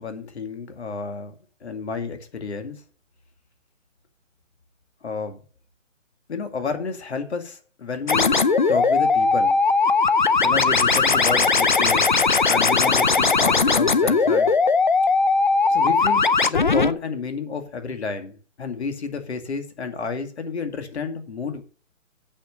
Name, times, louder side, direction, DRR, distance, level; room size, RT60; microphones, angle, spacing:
voice 1, 0.0-1.3 1.6-2.8 5.0-5.4 6.3-8.3 8.7-9.6 10.4-12.1 12.5-14.5 15.7-21.6, left 5 dB, 55° left, 2.4 m, -30 dB
sound 1, 8.1-16.9, left 4 dB, 40° left, 0.5 m, -19 dB
8.8 x 7.5 x 6.6 m
hypercardioid pair, 170°, 39 cm